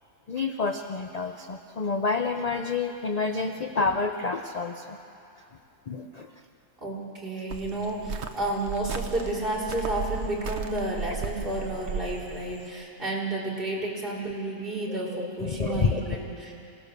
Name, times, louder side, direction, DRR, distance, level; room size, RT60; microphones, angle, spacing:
voice 1, 0.3-5.0 5.9-6.3 15.1-16.0, left 4 dB, 50° left, 5 dB, 0.4 m, -29 dB
voice 2, 6.8-16.5, right 2 dB, 35° right, -4 dB, 4.0 m, -31 dB
Cricket, 7.5-12.7, right 5 dB, 50° right, 1.1 m, -35 dB
26.5 x 17.5 x 6.8 m, 2.7 s
omnidirectional pair, 1.7 m